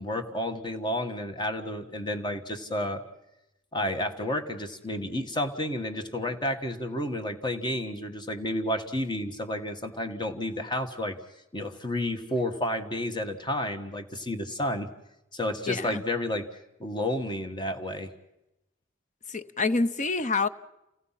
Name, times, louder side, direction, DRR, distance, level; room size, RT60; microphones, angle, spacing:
voice 1, 0.0-3.0 3.7-11.2 11.5-14.9 15.3-16.5 16.8-18.1, left 1 dB, 25° left, 6 dB, 1.4 m, -31 dB
voice 2, 15.7-16.0 19.3-20.5, left 3 dB, 40° left, 13 dB, 0.8 m, -27 dB
29.0 x 17.5 x 5.7 m, 0.89 s
head